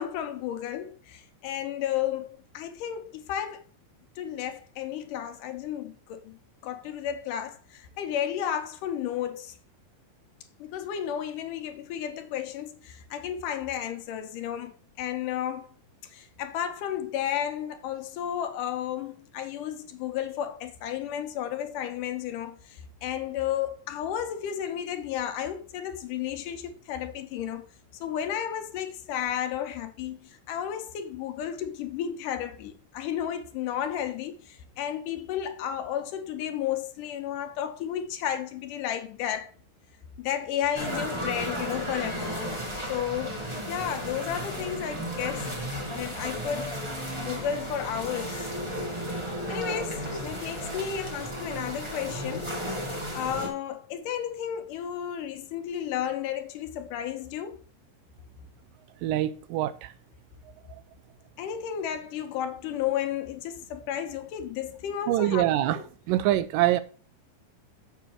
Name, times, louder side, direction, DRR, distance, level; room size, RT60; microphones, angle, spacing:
voice 1, 0.0-3.6 4.2-6.4 6.6-9.6 10.6-15.7 16.0-27.6 28.0-39.5 40.2-43.4 43.7-45.5 45.9-46.8 47.2-48.5 49.5-52.5 53.1-57.6 61.4-65.8, left 10 dB, 75° left, 2.3 m, -33 dB
sound 1, 40.7-53.5, equal, 15° right, 1.1 m, -34 dB
voice 2, 59.0-59.9 65.1-65.8 66.1-66.8, right 14 dB, 85° right, 2.2 m, -24 dB
7.1 x 6.8 x 4.5 m
omnidirectional pair, 3.9 m